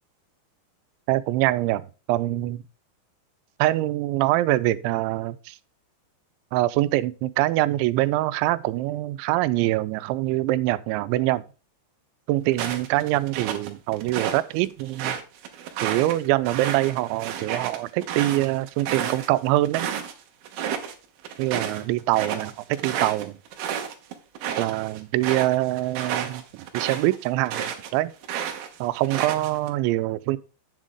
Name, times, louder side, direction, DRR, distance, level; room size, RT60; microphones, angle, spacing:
voice 1, 1.1-1.8 2.1-2.6 3.6-5.6 6.5-11.4 12.3-15.2 15.8-19.9 21.4-23.4 24.6-28.1 28.8-30.4, right 16 dB, 90° right, 2.9 m, -24 dB
sound 1, 12.5-14.4 14.8-20.1 20.4-20.9 21.2-27.9 28.2-29.7, right 8 dB, 70° right, 2.7 m, -31 dB
8.2 x 7.5 x 3.7 m
omnidirectional pair, 5.3 m